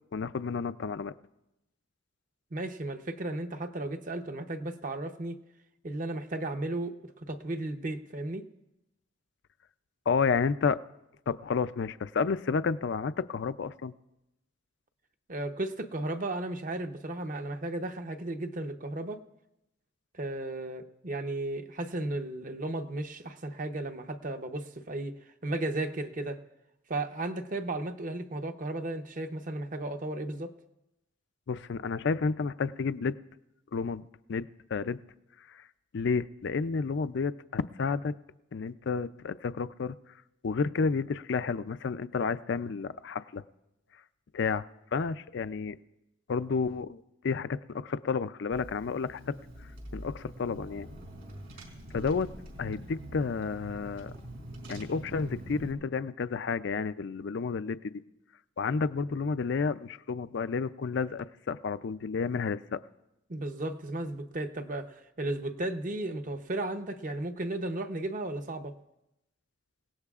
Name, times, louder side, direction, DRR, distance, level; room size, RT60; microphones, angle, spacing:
voice 1, 0.1-1.1 10.1-10.8 11.3-13.9 31.5-33.2 33.7-35.0 35.5-35.6 35.9-38.1 38.5-40.0 40.4-43.4 44.3-45.8 46.3-49.4 49.9-50.9 51.9-52.3 52.6-54.1 54.7-57.8 58.6-62.8, left 5 dB, 60° left, 14 dB, 0.4 m, -31 dB
voice 2, 2.5-5.4 5.8-8.5 15.3-19.2 20.1-25.2 25.4-26.4 26.9-30.5 63.3-68.7, right 2 dB, 40° right, 7 dB, 0.8 m, -34 dB
Car / Engine, 48.5-55.7, right 1 dB, 65° right, 4.0 m, -45 dB
27.5 x 17.5 x 2.4 m, 0.91 s
head